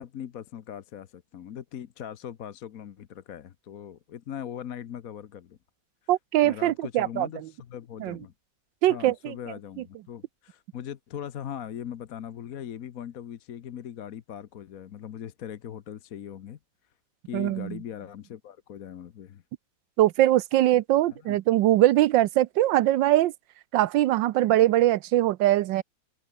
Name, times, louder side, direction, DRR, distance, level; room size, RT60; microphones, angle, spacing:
voice 1, 0.0-5.6 6.4-8.3 8.9-16.6 17.2-19.4 21.1-21.4, left 9 dB, 55° left, 1.2 m, -40 dB
voice 2, 6.1-7.3 8.0-8.2 8.8-9.3 17.3-17.8 20.0-23.3 23.7-25.8, right 14 dB, 80° right, 1.3 m, -22 dB
omnidirectional pair, 2.1 m